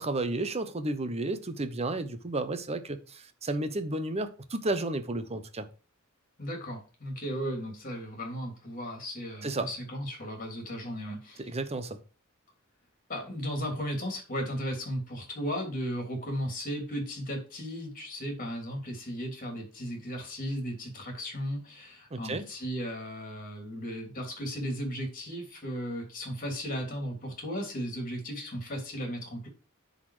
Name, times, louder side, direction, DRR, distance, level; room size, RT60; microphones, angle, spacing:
voice 1, 0.0-5.7 9.4-9.7 11.4-12.0 22.1-22.4, right 2 dB, 30° right, 0.9 m, -32 dB
voice 2, 6.4-11.4 13.1-29.5, equal, 40° left, 3.2 m, -35 dB
10.0 x 4.1 x 4.9 m
head